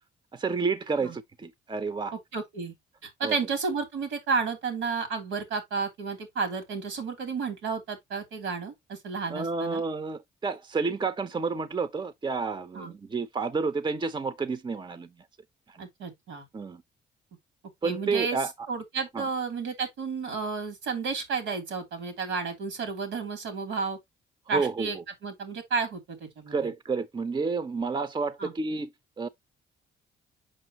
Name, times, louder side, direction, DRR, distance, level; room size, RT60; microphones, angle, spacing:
voice 1, 0.3-2.1 3.2-3.4 9.3-15.1 15.7-15.8 16.5-16.8 17.8-18.5 19.1-19.3 24.5-25.0 26.5-28.9 29.2-29.3, right 4 dB, 25° right, 0.7 m, -30 dB
voice 2, 2.1-2.7 3.0-9.8 12.7-12.9 15.8-16.5 17.8-18.4 18.7-24.0 24.5-25.0 25.2-26.7 28.4-28.5, right 5 dB, 85° right, 3.0 m, -32 dB
6.5 x 5.4 x 2.9 m
cardioid pair, 90°, 20 cm